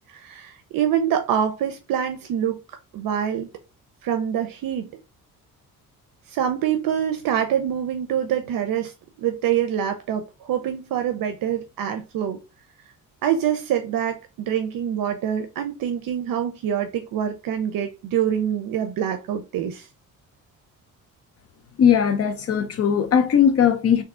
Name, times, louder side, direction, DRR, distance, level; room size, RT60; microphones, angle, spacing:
voice 1, 0.1-2.6 2.9-3.5 4.0-5.0 6.3-12.4 13.2-19.9, right 9 dB, 75° right, 0.6 m, -25 dB
voice 2, 21.8-24.0, left 8 dB, 45° left, 0.7 m, -19 dB
3.5 x 2.6 x 3.6 m
cardioid pair, 130°, 34 cm